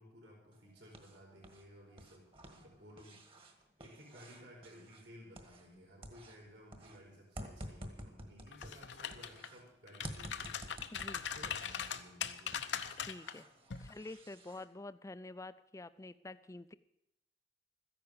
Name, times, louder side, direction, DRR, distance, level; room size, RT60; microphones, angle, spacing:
voice 1, 0.0-10.6 11.1-12.6, equal, 75° right, -3 dB, 4.6 m, -57 dB
sound 1, 0.5-1.6 1.9-5.8 6.0-9.6 10.0-12.1 12.5-14.6, right 1 dB, 30° right, 1.7 m, -51 dB
sound 2, 8.5-9.5 9.9-13.3 13.7-13.9, left 8 dB, 80° left, 0.9 m, -40 dB
voice 2, 10.9-11.2 13.0-13.5 13.8-16.7, left 2 dB, 15° left, 14 dB, 0.5 m, -48 dB
14.0 x 10.5 x 7.0 m, 0.83 s
head